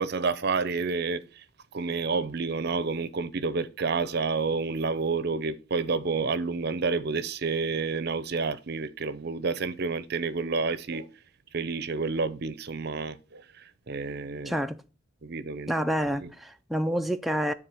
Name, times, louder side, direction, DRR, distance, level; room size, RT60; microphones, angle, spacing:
voice 1, 0.0-1.4 1.7-11.1 11.5-14.6 15.2-15.7 16.2-16.3, right 4 dB, 55° right, 0.6 m, -29 dB
voice 2, 14.5-14.8 15.7-17.5, equal, ahead, 0.4 m, -28 dB
9.7 x 3.7 x 6.3 m
head